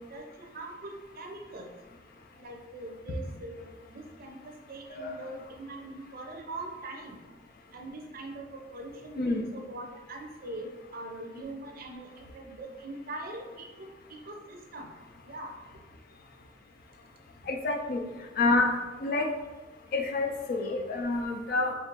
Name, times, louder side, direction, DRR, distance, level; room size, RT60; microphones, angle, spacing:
voice 1, 0.0-1.7 2.4-4.4 4.7-7.2 7.7-14.9 15.2-15.5, right 2 dB, 50° right, 2 dB, 0.5 m, -42 dB
voice 2, 17.5-18.0 18.4-18.7 19.0-19.3 19.9-21.7, left 3 dB, 50° left, 3 dB, 0.4 m, -28 dB
3.3 x 2.5 x 4.4 m, 1.2 s
head